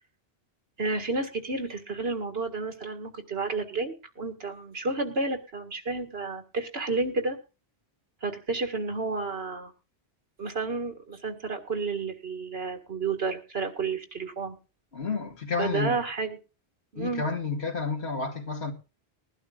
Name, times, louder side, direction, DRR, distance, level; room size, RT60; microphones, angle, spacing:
voice 1, 0.8-7.4 8.2-9.7 10.4-14.6 15.6-16.4 16.9-17.2, right 3 dB, 70° right, 2.2 m, -31 dB
voice 2, 14.9-16.0 17.0-18.7, left 4 dB, 80° left, 2.5 m, -30 dB
21.0 x 11.5 x 2.4 m
omnidirectional pair, 1.1 m